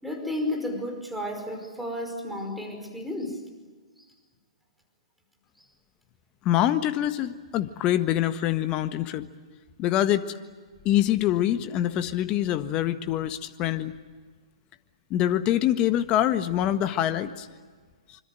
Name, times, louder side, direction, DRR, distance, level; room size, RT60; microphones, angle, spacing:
voice 1, 0.0-3.4 4.0-4.1, left 1 dB, ahead, 2 dB, 5.2 m, -32 dB
voice 2, 6.4-9.3 9.8-10.3 10.8-13.9 15.1-17.5, left 12 dB, 30° left, 10 dB, 1.5 m, -25 dB
26.0 x 25.0 x 7.8 m, 1.5 s
figure-of-eight pair, 120°, 3 cm